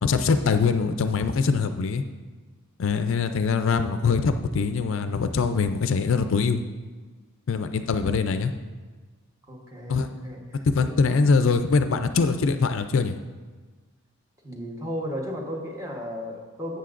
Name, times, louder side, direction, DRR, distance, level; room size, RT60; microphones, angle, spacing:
voice 1, 0.0-2.0 2.8-6.6 7.5-8.5 9.9-10.1 10.7-13.1, left 4 dB, 60° left, 9 dB, 0.4 m, -23 dB
voice 2, 9.5-10.9 14.4-16.8, equal, 15° right, -1 dB, 1.1 m, -35 dB
12.5 x 7.9 x 2.5 m, 1.4 s
head